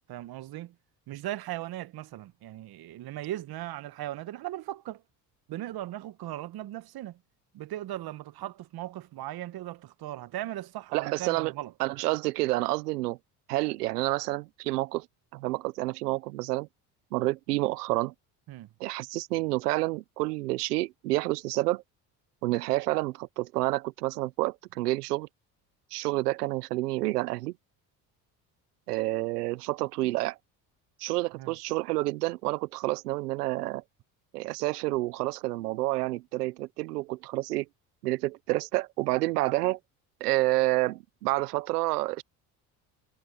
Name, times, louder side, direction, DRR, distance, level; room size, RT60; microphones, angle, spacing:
voice 1, 0.1-0.7 1.1-5.0 5.5-7.2 7.5-11.7 18.5-18.7 31.4-31.5, right 14 dB, 55° right, 1.2 m, -38 dB
voice 2, 10.9-11.5 11.8-13.2 13.5-15.1 15.3-16.7 17.1-18.1 18.8-21.8 22.4-25.3 25.9-27.5 28.9-30.4 31.0-33.8 34.3-37.7 38.0-39.8 40.2-42.2, right 19 dB, 90° right, 0.8 m, -29 dB
hypercardioid pair, 70°, 45 cm